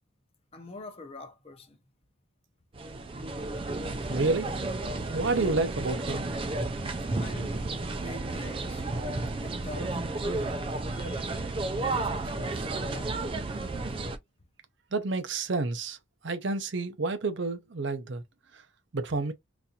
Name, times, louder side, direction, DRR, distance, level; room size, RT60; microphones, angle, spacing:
voice 1, 0.5-1.8 7.2-7.7 8.0-8.8 9.4-10.5 10.9-11.5 11.8-13.2, left 3 dB, 30° left, 0.7 m, -46 dB
sound 1, 2.7-14.2, right 2 dB, 25° right, 0.4 m, -32 dB
voice 2, 4.1-4.5 5.1-6.2 14.9-16.0 16.2-18.2 18.5-18.6 18.9-19.3, right 3 dB, 60° right, 0.7 m, -29 dB
4.0 x 2.6 x 2.8 m
head